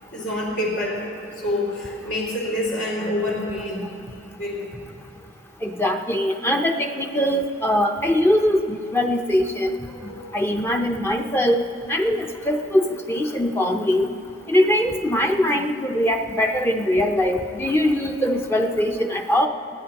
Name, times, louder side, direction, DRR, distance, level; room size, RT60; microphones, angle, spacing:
voice 1, 0.1-1.1 1.4-3.9 4.3-4.8 9.9-10.5, left 1 dB, 85° left, -6 dB, 2.7 m, -27 dB
voice 2, 5.6-9.8 10.3-11.6 11.9-14.1 14.5-19.5, left 1 dB, 15° left, 3 dB, 0.5 m, -21 dB
21.0 x 14.5 x 2.9 m, 2.4 s
head